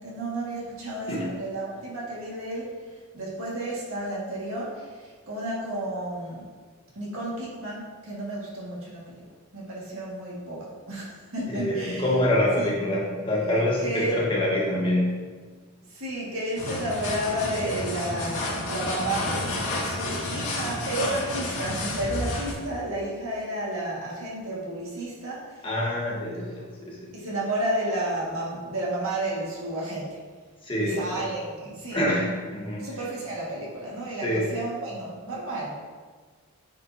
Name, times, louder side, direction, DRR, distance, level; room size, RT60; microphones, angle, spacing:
voice 1, 0.0-6.5 6.9-9.2 9.5-12.1 12.5-12.7 13.8-14.2 15.9-25.7 27.1-30.2 30.8-32.1 32.8-35.7, right 1 dB, 65° right, -5 dB, 2.0 m, -32 dB
voice 2, 11.5-15.1 25.6-27.0 30.6-31.2 31.9-32.9 34.2-34.5, left 1 dB, 25° left, -5 dB, 1.4 m, -26 dB
sound 1, 16.6-22.5, left 1 dB, 85° left, 1.9 m, -30 dB
8.8 x 5.0 x 2.9 m, 1.5 s
head